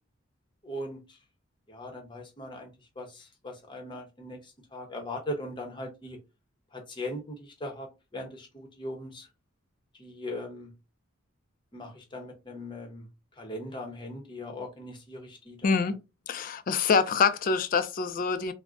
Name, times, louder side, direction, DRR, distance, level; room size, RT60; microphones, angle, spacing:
voice 1, 0.6-1.0 1.7-6.2 6.7-9.3 10.0-10.7 11.7-13.1 13.4-15.8, left 1 dB, 25° left, 0.7 m, -39 dB
voice 2, 15.6-15.9 16.3-18.5, left 5 dB, 45° left, 0.3 m, -25 dB
3.5 x 2.0 x 2.4 m
head